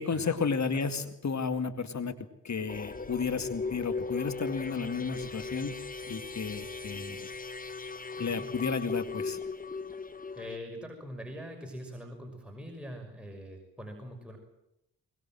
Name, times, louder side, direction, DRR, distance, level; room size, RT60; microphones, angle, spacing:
voice 1, 0.0-2.1 2.4-5.8 6.1-7.3 8.2-9.4, left 5 dB, 40° left, 9 dB, 2.2 m, -32 dB
sound 1, 2.7-10.6, left 4 dB, 20° left, 1.6 m, -38 dB
voice 2, 10.4-14.4, equal, ahead, 2 dB, 6.0 m, -43 dB
23.0 x 21.0 x 7.7 m, 0.85 s
hypercardioid pair, 40°, 44 cm